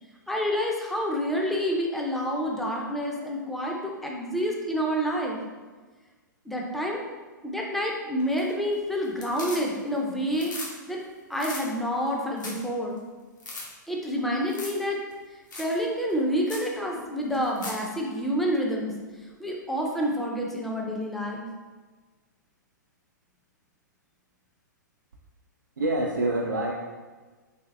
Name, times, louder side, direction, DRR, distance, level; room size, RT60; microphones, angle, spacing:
voice 1, 0.3-5.4 6.5-7.0 7.4-10.5 10.9-11.0 11.3-13.0 13.9-15.0 15.6-18.9 19.4-21.5, equal, ahead, -2 dB, 0.4 m, -28 dB
sound 1, 8.2-8.7 9.0-10.0 10.3-10.7 11.0-11.1 11.3-11.6 12.1-12.2 12.4-12.7 13.0-13.1 13.4-13.6 14.5-14.8 15.1-15.2 15.5-15.7 16.1-16.2 16.5-16.7 17.3-17.8 20.0-20.1, left 2 dB, 70° left, 0.9 m, -38 dB
voice 2, 25.8-26.7, right 2 dB, 75° right, -1 dB, 0.4 m, -26 dB
3.4 x 3.1 x 2.3 m, 1.3 s
figure-of-eight pair, 110°, 10 cm